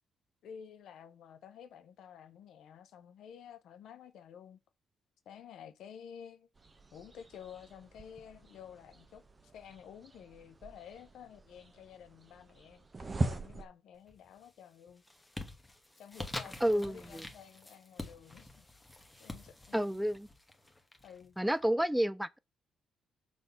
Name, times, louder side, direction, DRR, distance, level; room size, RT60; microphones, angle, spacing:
voice 1, 0.4-4.6 5.2-6.5 6.9-15.0 16.0-18.7 19.2-20.0 21.0-21.4, left 8 dB, 75° left, 0.9 m, -52 dB
sound 1, 6.5-13.6, right 2 dB, 25° right, 0.9 m, -42 dB
sound 2, 14.0-14.5 14.9-21.5, left 2 dB, 15° left, 1.2 m, -46 dB
voice 2, 16.6-17.2 19.7-20.3 21.4-22.4, equal, 5° right, 0.3 m, -30 dB
6.1 x 3.5 x 5.5 m
cardioid pair, 90°, 0 cm